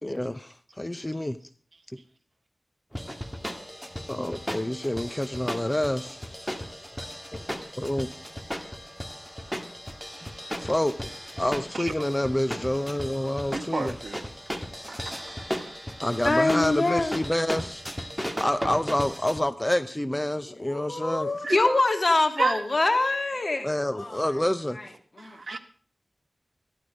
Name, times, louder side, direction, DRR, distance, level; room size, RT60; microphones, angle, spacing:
voice 1, 0.0-1.4 4.1-6.2 7.0-7.1 7.3-7.4 7.8-8.1 10.6-10.9 11.4-14.0 16.0-17.8 18.4-21.3 23.6-24.8, left 1 dB, 20° left, 11 dB, 0.7 m, -27 dB
sound 1, 2.9-19.4, equal, ahead, 1.9 m, -36 dB
voice 2, 13.5-14.2 14.9-15.7 21.4-21.8 22.4-22.6 25.2-25.6, right 3 dB, 75° right, 7 dB, 1.5 m, -31 dB
voice 3, 16.2-17.2 20.6-23.7 23.9-24.2 25.2-25.4, left 2 dB, 50° left, 5 dB, 2.1 m, -24 dB
14.0 x 11.5 x 5.0 m, 0.42 s
wide cardioid pair, 55°, 0 cm